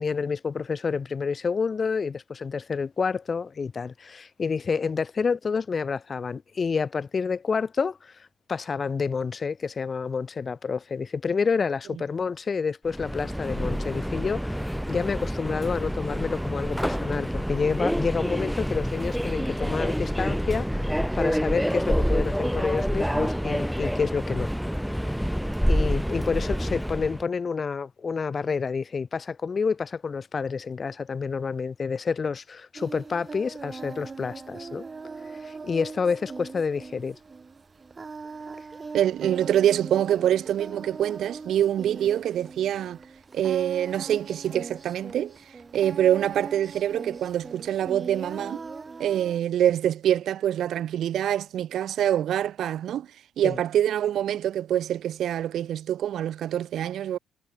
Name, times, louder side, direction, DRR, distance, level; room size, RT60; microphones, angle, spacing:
voice 1, 0.0-8.1 8.5-14.6 14.9-24.5 25.2-25.3 25.7-34.8 35.4-37.2 53.4-53.6, left 5 dB, 40° left, 1.7 m, -29 dB
Subway metro underground, 12.8-27.2, equal, ahead, 0.6 m, -27 dB
Singing, 32.8-49.4, right 4 dB, 30° right, 1.5 m, -40 dB
voice 2, 38.9-43.0 43.3-45.4 45.7-48.6 49.0-53.1 53.4-57.2, right 11 dB, 70° right, 0.3 m, -25 dB
cardioid pair, 90°, 0 cm